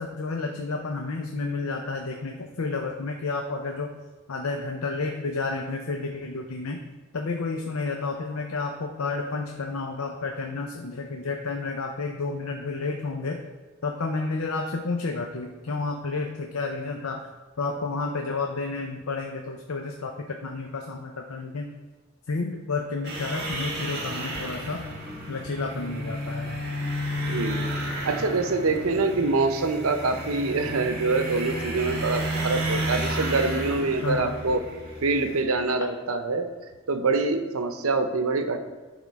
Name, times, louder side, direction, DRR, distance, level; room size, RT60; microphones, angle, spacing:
voice 1, 0.0-3.9 4.3-6.8 7.1-13.4 13.8-17.3 17.6-21.7 22.3-24.8 25.3-26.5 34.0-34.4, left 3 dB, 90° left, 3 dB, 0.7 m, -31 dB
sound 1, 23.0-35.4, right 1 dB, 50° right, 1.4 m, -32 dB
voice 2, 27.3-27.7 28.0-34.6 35.0-36.5 36.9-38.6, right 3 dB, 80° right, 8 dB, 0.7 m, -25 dB
11.0 x 3.7 x 4.7 m, 1.3 s
head